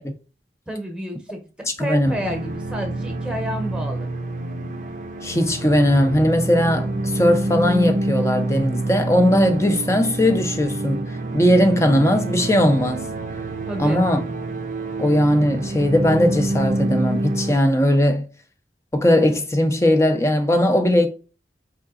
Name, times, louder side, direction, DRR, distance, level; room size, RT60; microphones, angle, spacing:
voice 1, 0.7-4.1 13.6-14.1, equal, 5° right, 1.0 m, -30 dB
sound 1, 2.0-17.5, right 2 dB, 45° right, 0.5 m, -27 dB
voice 2, 5.2-11.0 11.3-13.1 13.8-14.2 15.0-18.3 18.9-21.1, left 1 dB, 15° left, 0.6 m, -18 dB
4.7 x 3.7 x 2.4 m
head